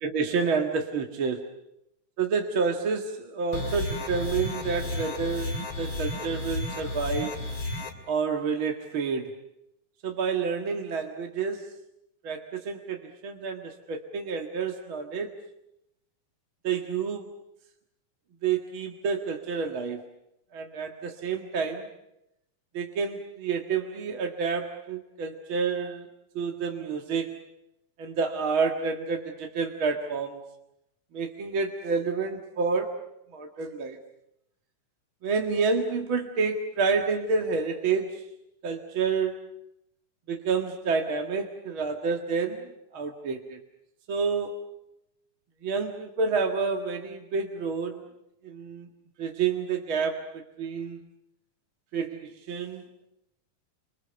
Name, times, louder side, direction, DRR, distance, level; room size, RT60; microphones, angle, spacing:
voice 1, 0.0-1.5 2.2-7.4 8.1-9.3 10.0-11.7 12.2-15.3 16.6-17.3 18.4-20.0 20.5-21.9 22.7-26.1 26.3-27.4 28.0-30.4 31.1-32.9 33.3-34.0 35.2-38.2 38.6-39.5 40.3-43.6 44.1-44.6 45.6-48.0 48.4-48.9 49.2-51.0 51.9-52.8, right 5 dB, 45° right, 3 dB, 2.3 m, -29 dB
sound 1, 3.5-7.9, left 2 dB, 40° left, 3.6 m, -32 dB
29.5 x 26.5 x 6.9 m, 0.83 s
omnidirectional pair, 3.6 m